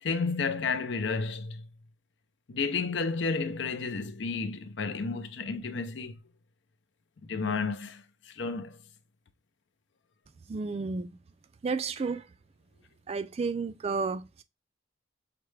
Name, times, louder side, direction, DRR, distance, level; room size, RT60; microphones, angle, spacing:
voice 1, 0.0-1.7 2.5-6.2 7.3-8.8, left 4 dB, 70° left, 0.5 m, -32 dB
voice 2, 10.5-11.1 11.6-12.3 13.1-14.4, right 4 dB, 30° right, 0.3 m, -32 dB
5.8 x 2.2 x 3.2 m
head